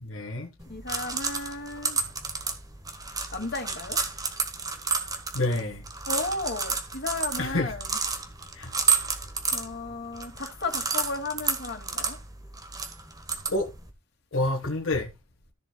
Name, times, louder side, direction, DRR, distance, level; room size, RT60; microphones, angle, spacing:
voice 1, 0.0-0.5 5.3-5.8 7.4-7.7 8.5-8.7 13.5-13.7 14.3-15.1, left 2 dB, 70° left, 1.6 m, -28 dB
sound 1, 0.6-13.9, right 5 dB, 20° right, 1.5 m, -31 dB
voice 2, 0.7-2.0 3.3-4.0 6.1-8.0 9.5-12.2, left 3 dB, 55° left, 2.4 m, -34 dB
14.0 x 6.9 x 2.3 m
head